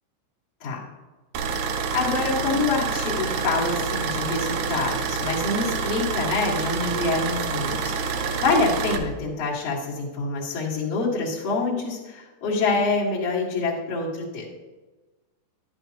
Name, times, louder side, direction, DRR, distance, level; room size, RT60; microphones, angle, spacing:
sound 1, 1.3-9.0, right 5 dB, 80° right, 3.0 m, -27 dB
voice 1, 1.9-14.5, left 3 dB, 80° left, -8 dB, 1.4 m, -26 dB
11.0 x 10.5 x 2.9 m, 1.2 s
omnidirectional pair, 6.0 m